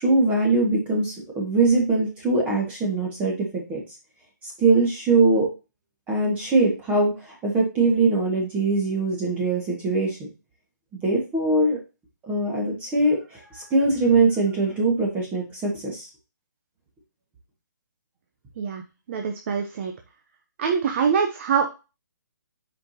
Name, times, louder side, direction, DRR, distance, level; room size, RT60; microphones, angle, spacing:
voice 1, 0.0-3.8 4.4-5.5 6.1-10.2 11.0-11.8 12.2-16.1, right 3 dB, 15° right, -2 dB, 1.7 m, -22 dB
voice 2, 19.1-19.9 20.6-21.7, right 6 dB, 40° right, 4 dB, 0.8 m, -24 dB
7.1 x 5.2 x 2.8 m, 0.29 s
hypercardioid pair, 155°, 10 cm